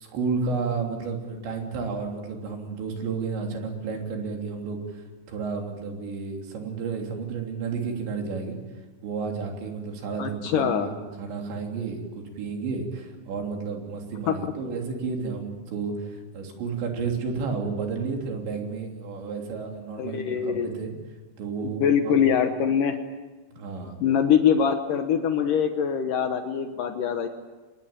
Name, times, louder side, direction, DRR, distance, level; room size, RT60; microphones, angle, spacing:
voice 1, 0.0-8.6 9.0-20.9 21.4-22.2 23.5-24.0, right 4 dB, 70° right, 2 dB, 5.4 m, -32 dB
voice 2, 10.2-10.9 14.3-14.5 20.0-20.7 21.6-23.0 24.0-27.3, left 8 dB, 80° left, 7 dB, 1.9 m, -23 dB
25.0 x 20.5 x 8.9 m, 1.3 s
omnidirectional pair, 5.5 m